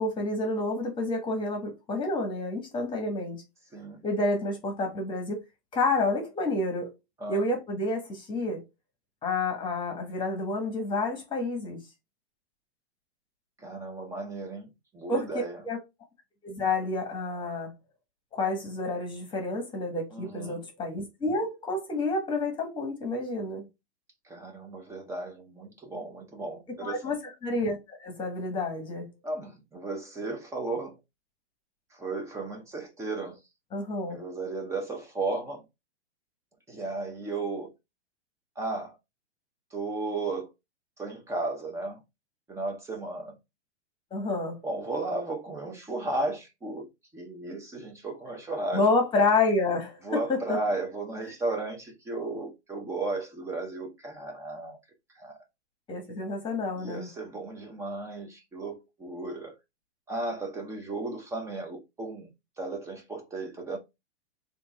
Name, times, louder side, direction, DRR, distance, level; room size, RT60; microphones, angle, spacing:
voice 1, 0.0-3.4 4.0-5.4 5.7-6.9 7.3-8.6 9.2-11.8 15.1-15.3 15.6-15.8 16.4-17.7 18.3-23.6 26.8-27.2 27.4-29.1 33.7-34.2 44.1-44.6 48.7-50.0 50.3-50.6 55.9-57.1, left 2 dB, 15° left, 1.2 m, -29 dB
voice 2, 13.6-15.6 20.1-20.6 24.2-27.1 29.2-31.0 32.0-33.4 34.1-35.6 36.7-37.7 38.6-39.0 39.7-40.5 41.0-42.0 42.5-43.4 44.6-48.9 50.0-54.8 55.2-55.4 56.8-59.5 60.1-62.3 62.6-63.8, right 2 dB, 10° right, 0.6 m, -34 dB
3.5 x 2.7 x 3.1 m
hypercardioid pair, 140°, 35 cm